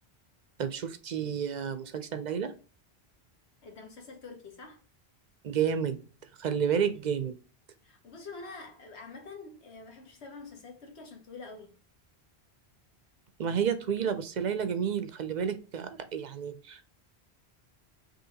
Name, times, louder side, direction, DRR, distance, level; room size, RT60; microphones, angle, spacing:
voice 1, 0.6-2.5 5.4-6.0 6.4-7.4 13.4-16.9, right 7 dB, 55° right, 0.5 m, -30 dB
voice 2, 3.6-4.8 7.8-11.7, left 4 dB, 85° left, 1.4 m, -46 dB
5.4 x 2.8 x 2.8 m
omnidirectional pair, 1.1 m